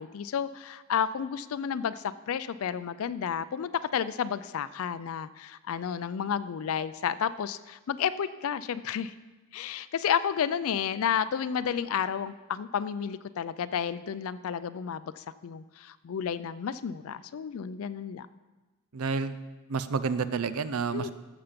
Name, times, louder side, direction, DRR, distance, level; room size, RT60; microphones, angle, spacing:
voice 1, 0.0-9.1 9.5-18.3 20.9-21.1, left 8 dB, 70° left, 13 dB, 0.4 m, -31 dB
voice 2, 18.9-19.4 19.7-21.1, right 5 dB, 80° right, 14 dB, 0.6 m, -29 dB
12.5 x 6.9 x 5.2 m, 1.2 s
head